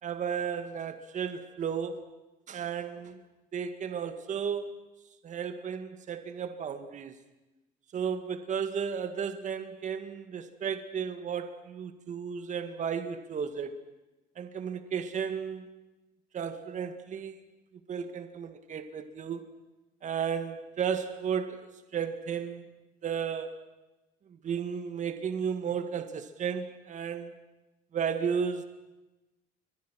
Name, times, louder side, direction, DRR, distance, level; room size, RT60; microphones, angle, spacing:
voice 1, 0.0-2.1 2.5-3.2 3.5-4.7 5.2-7.2 7.9-13.7 14.4-15.7 16.3-17.4 17.9-19.5 20.0-21.7 21.9-22.6 23.0-23.6 24.3-27.3 27.9-28.6, right 7 dB, 45° right, 9 dB, 1.9 m, -34 dB
29.5 x 23.5 x 6.4 m, 1.1 s
cardioid pair, 110°, 17 cm